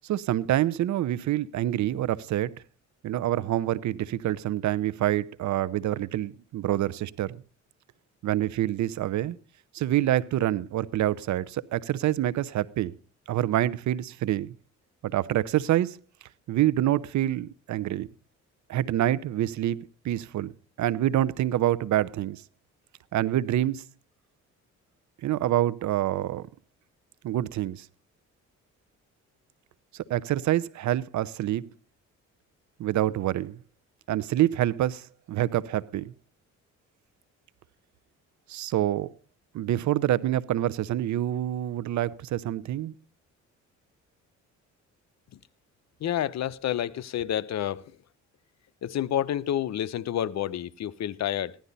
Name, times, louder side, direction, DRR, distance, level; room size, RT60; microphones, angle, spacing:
voice 1, 0.0-2.5 3.0-7.4 8.2-9.4 9.7-12.9 13.3-14.5 15.1-16.0 16.5-18.1 18.7-19.8 20.0-20.5 20.8-22.4 23.1-23.8 25.2-26.5 27.2-27.9 30.1-31.7 32.8-33.6 34.1-36.1 38.5-39.1 39.5-42.9, right 13 dB, 70° right, 0.8 m, -26 dB
voice 2, 46.0-47.9 48.8-51.6, left 11 dB, 60° left, 0.8 m, -29 dB
16.0 x 11.5 x 4.1 m
cardioid pair, 90°, 30 cm